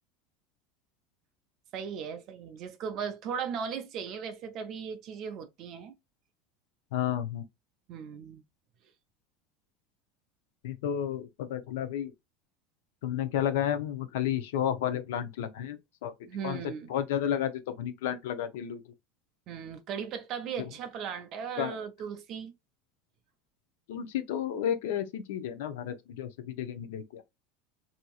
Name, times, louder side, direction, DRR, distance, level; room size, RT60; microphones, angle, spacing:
voice 1, 1.7-5.9 7.9-8.4 16.3-16.9 19.5-22.5, right 7 dB, 35° right, 0.4 m, -37 dB
voice 2, 6.9-7.4 10.6-12.1 13.0-16.1 16.4-18.8 21.6-21.7 23.9-27.2, left 10 dB, 80° left, 0.5 m, -32 dB
2.8 x 2.6 x 2.2 m
supercardioid pair, 175°, 0 cm